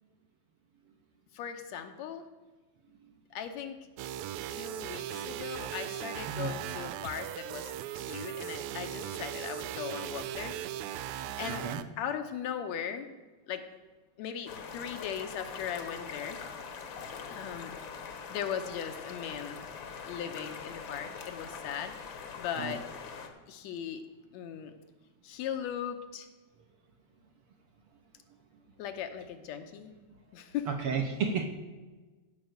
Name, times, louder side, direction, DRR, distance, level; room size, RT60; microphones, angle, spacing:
voice 1, 1.3-2.3 3.3-3.8 4.5-10.6 10.8-11.0 11.4-11.7 12.0-13.1 13.5-13.7 14.2-16.4 17.3-17.7 18.3-19.6 20.1-21.9 22.4-22.9 23.5-24.0 24.3-24.7 25.2-26.3 28.8-29.9 30.3-30.7, left 8 dB, 75° left, 7 dB, 2.1 m, -38 dB
sound 1, 4.0-11.8, right 11 dB, 85° right, 2.0 m, -38 dB
voice 2, 11.5-11.8 22.6-22.8 30.7-31.5, right 6 dB, 65° right, 4 dB, 1.5 m, -32 dB
sound 2, 14.5-23.3, left 6 dB, 55° left, 1.5 m, -43 dB
15.0 x 5.4 x 7.9 m, 1.3 s
omnidirectional pair, 3.3 m